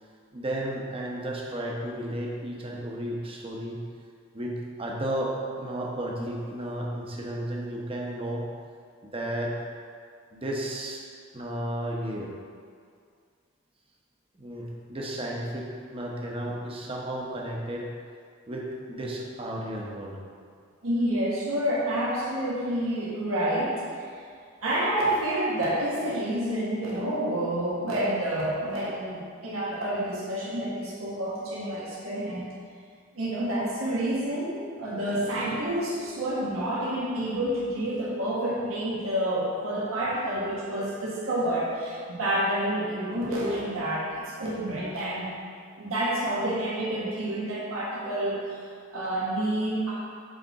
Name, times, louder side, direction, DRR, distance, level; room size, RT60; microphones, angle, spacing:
voice 1, 0.3-3.8 4.3-8.4 9.1-9.5 10.3-11.0 11.3-12.3 14.3-17.9 18.5-20.2, right 1 dB, 25° right, -2 dB, 0.9 m, -33 dB
voice 2, 20.8-23.8 24.6-32.5 33.1-45.3 45.8-49.9, right 1 dB, 90° right, -7 dB, 1.3 m, -28 dB
6.5 x 4.2 x 4.7 m, 2.2 s
head